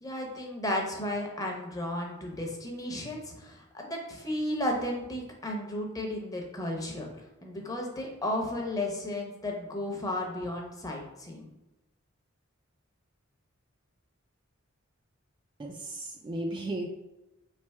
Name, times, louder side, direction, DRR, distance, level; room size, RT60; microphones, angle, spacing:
voice 1, 0.0-7.1 7.4-11.5, left 1 dB, 15° left, 0 dB, 0.7 m, -34 dB
voice 2, 15.6-16.9, right 1 dB, 25° right, 2 dB, 0.3 m, -35 dB
3.3 x 3.0 x 4.4 m, 0.96 s
head